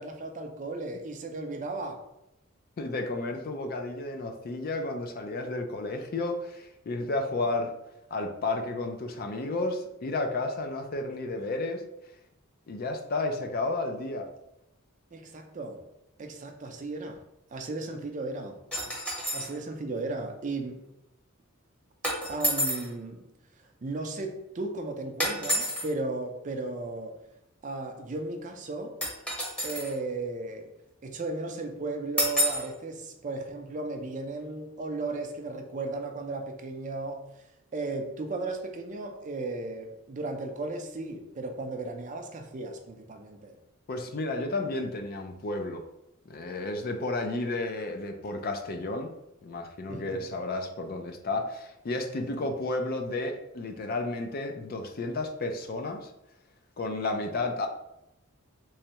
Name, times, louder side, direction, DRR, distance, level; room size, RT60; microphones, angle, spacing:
voice 1, 0.0-2.0 15.1-15.8 16.2-17.2 17.5-18.6 19.3-20.9 22.3-23.3 23.8-27.2 27.6-29.0 29.6-30.7 31.0-37.3 37.7-43.6 49.9-50.3 52.3-52.4, right 2 dB, 35° right, 4 dB, 0.5 m, -35 dB
voice 2, 2.8-7.7 8.1-11.8 12.7-14.3 43.9-45.8 46.3-49.1 49.4-56.1 56.8-57.7, left 2 dB, 45° left, 5 dB, 0.4 m, -32 dB
sound 1, 18.7-19.5 22.0-22.9 25.2-25.9 29.0-30.0 32.2-32.7, equal, 5° left, 0.8 m, -29 dB
3.4 x 3.2 x 2.9 m, 0.86 s
head